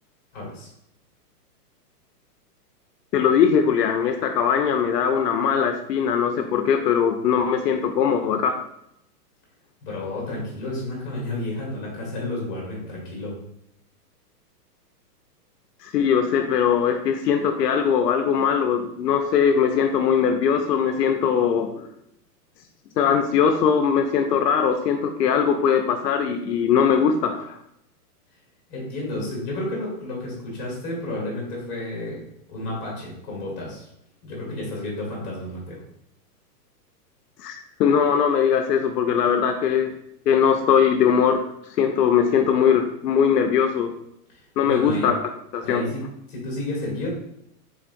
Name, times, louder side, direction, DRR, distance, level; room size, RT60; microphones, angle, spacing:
voice 1, 0.3-0.7 9.8-13.4 28.7-32.2 32.5-33.9 34.2-35.8 44.3-45.1 45.6-47.1, left 2 dB, 25° left, -3 dB, 1.5 m, -31 dB
voice 2, 3.1-8.5 15.8-21.7 23.0-27.6 37.4-39.9 40.3-41.4 41.8-43.9 44.6-45.1 45.5-45.8, left 7 dB, 80° left, 5 dB, 0.6 m, -20 dB
3.9 x 3.5 x 2.6 m, 0.77 s
hypercardioid pair, 170°, 48 cm